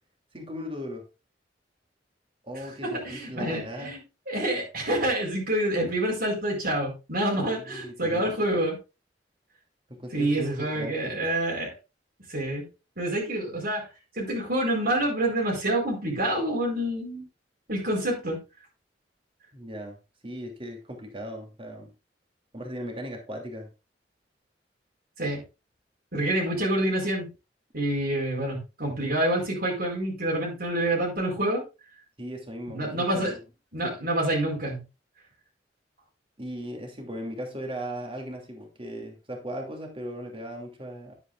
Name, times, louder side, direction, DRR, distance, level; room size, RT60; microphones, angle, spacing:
voice 1, 0.3-1.0 2.4-4.0 7.4-8.3 9.9-11.2 19.5-21.9 22.5-23.7 32.2-33.4 33.8-34.0 36.4-41.1, equal, 30° right, 3 dB, 2.9 m, -38 dB
voice 2, 2.8-4.0 4.3-8.8 10.1-11.7 12.3-12.7 13.0-13.9 14.1-17.2 17.7-18.4 25.2-25.4 26.1-27.3 27.7-31.6 32.7-33.3 33.7-34.8, right 1 dB, 55° right, -2 dB, 4.6 m, -27 dB
11.0 x 9.6 x 2.6 m, 0.28 s
head